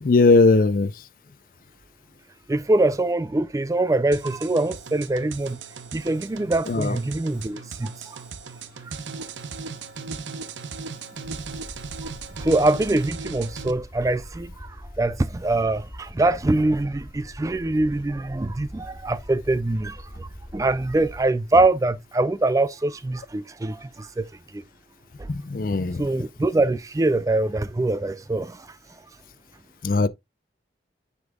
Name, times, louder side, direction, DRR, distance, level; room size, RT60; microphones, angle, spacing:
voice 1, 0.0-0.9 6.7-7.0 25.3-26.0 29.8-30.1, left 3 dB, 50° left, 0.4 m, -19 dB
voice 2, 2.5-5.6 5.9-8.2 8.8-8.9 12.0-12.1 12.4-24.6 25.2-25.3 26.0-28.7, right 2 dB, 20° right, 0.3 m, -24 dB
sound 1, 4.1-13.7, right 4 dB, 85° right, 0.7 m, -37 dB
sound 2, 11.2-21.2, equal, 20° left, 2.0 m, -43 dB
9.7 x 5.2 x 2.3 m
head